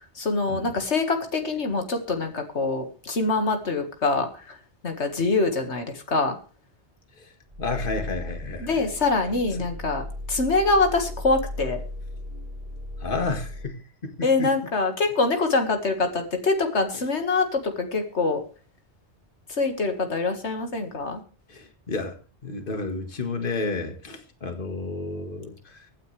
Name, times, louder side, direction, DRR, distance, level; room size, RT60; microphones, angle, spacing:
voice 1, 0.2-4.6 4.8-6.4 8.6-10.0 10.3-11.8 14.2-18.4 19.5-21.2, left 3 dB, 90° left, 5 dB, 2.2 m, -24 dB
sound 1, 7.5-13.7, left 1 dB, 45° right, 2.7 m, -36 dB
voice 2, 7.6-8.8 9.6-9.7 13.0-14.5 21.5-22.2 22.4-25.9, left 3 dB, 50° left, 6 dB, 2.1 m, -31 dB
24.0 x 9.4 x 3.3 m, 0.36 s
omnidirectional pair, 1.1 m